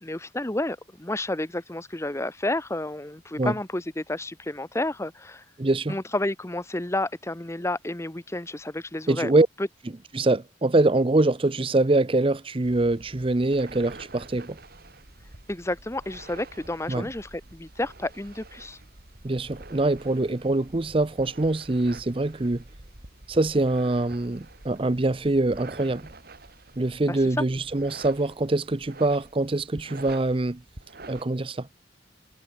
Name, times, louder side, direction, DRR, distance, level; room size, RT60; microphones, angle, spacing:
voice 1, 0.0-5.4 5.9-9.3 15.5-18.8 27.1-27.4, left 1 dB, 15° left, 1.0 m, -31 dB
voice 2, 5.6-6.0 9.1-9.5 10.1-14.6 16.9-17.1 19.2-22.6 23.3-26.1 26.8-30.6 31.1-31.7, right 2 dB, 30° right, 0.6 m, -24 dB
sound 1, 12.6-31.2, right 2 dB, 50° right, 3.0 m, -47 dB
head